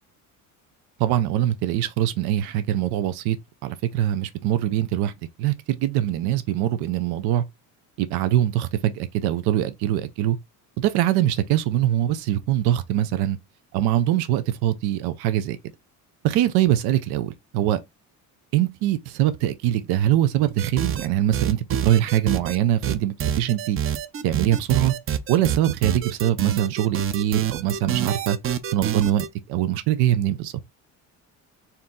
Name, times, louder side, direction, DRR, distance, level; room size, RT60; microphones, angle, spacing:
voice 1, 1.0-3.4 3.6-5.1 5.4-7.4 8.0-10.4 10.8-13.4 13.7-15.6 16.2-17.8 18.5-23.8 24.2-24.9 25.3-28.4 28.7-30.5, right 12 dB, 90° right, 0.7 m, -23 dB
sound 1, 20.6-21.1 21.3-22.6 22.8-29.3, right 9 dB, 35° right, 0.5 m, -26 dB
4.4 x 2.6 x 3.7 m
cardioid pair, 135°, 38 cm